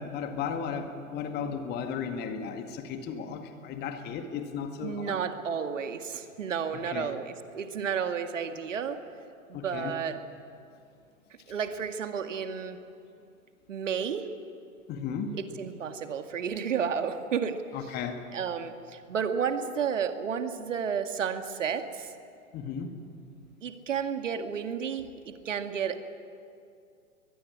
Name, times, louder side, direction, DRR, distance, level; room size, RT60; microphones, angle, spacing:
voice 1, 0.0-5.2 6.7-7.1 9.5-10.0 14.9-15.4 17.7-18.3 22.5-22.9, left 6 dB, 20° left, 6 dB, 2.0 m, -35 dB
voice 2, 4.8-9.0 9.5-10.2 11.5-12.8 13.7-14.3 15.3-17.6 18.3-22.1 23.6-26.0, right 7 dB, 55° right, 8 dB, 2.0 m, -32 dB
22.5 x 21.0 x 10.0 m, 2.4 s
figure-of-eight pair, 115°, 44 cm